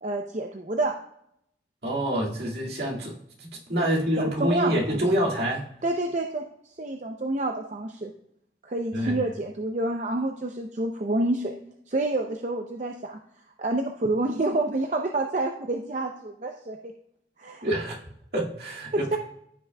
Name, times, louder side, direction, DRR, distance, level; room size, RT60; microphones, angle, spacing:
voice 1, 0.0-0.9 4.2-4.7 5.8-6.4 6.8-8.1 8.6-11.5 11.9-13.2 13.6-16.9 17.4-17.7 18.9-19.2, right 2 dB, 40° right, 3 dB, 0.5 m, -28 dB
voice 2, 1.8-3.1 3.4-5.6 8.9-9.2 17.6-18.0 18.3-19.2, right 1 dB, 65° right, -3 dB, 2.0 m, -26 dB
14.5 x 6.0 x 2.2 m, 0.74 s
head